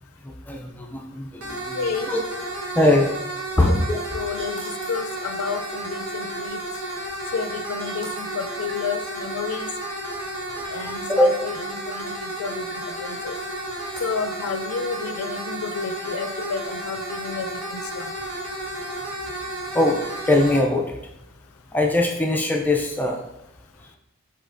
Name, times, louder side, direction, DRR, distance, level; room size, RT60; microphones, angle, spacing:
voice 1, 0.2-1.8 2.1-2.2 2.7-3.1 3.6-4.0 10.6-11.3 19.7-20.0 20.3-21.0 21.7-23.2, left 1 dB, 10° left, 0 dB, 0.3 m, -21 dB
sound 1, 1.4-20.6, right 1 dB, 80° right, 1.3 m, -32 dB
voice 2, 1.7-2.1 3.6-3.8 4.1-6.6 7.3-9.7 10.7-12.6 13.0-13.3 14.0-18.1, left 6 dB, 80° left, 9 dB, 0.4 m, -31 dB
sound 2, 4.4-5.0 7.4-7.5 7.8-8.2 10.8-10.9 11.3-11.4 11.7-11.8 12.1-12.2 12.9-13.4 13.7-14.1, right 1 dB, 25° right, 1.3 m, -44 dB
5.1 x 4.1 x 2.5 m, 0.85 s
head